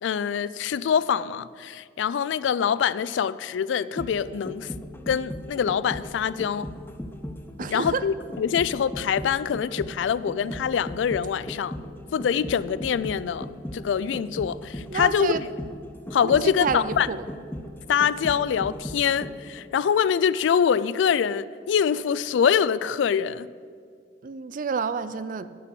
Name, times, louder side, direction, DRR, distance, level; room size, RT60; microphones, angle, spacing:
voice 1, 0.0-4.7 5.1-6.7 7.7-11.7 12.1-13.5 13.7-15.5 16.1-17.1 17.9-23.5, left 7 dB, 85° left, 0.3 m, -24 dB
sound 1, 3.7-19.6 19.9-20.0, left 1 dB, 10° left, 0.6 m, -37 dB
voice 2, 7.6-8.0 14.9-15.4 16.4-17.2 24.2-25.5, right 5 dB, 50° right, 0.4 m, -29 dB
11.0 x 5.6 x 7.8 m
head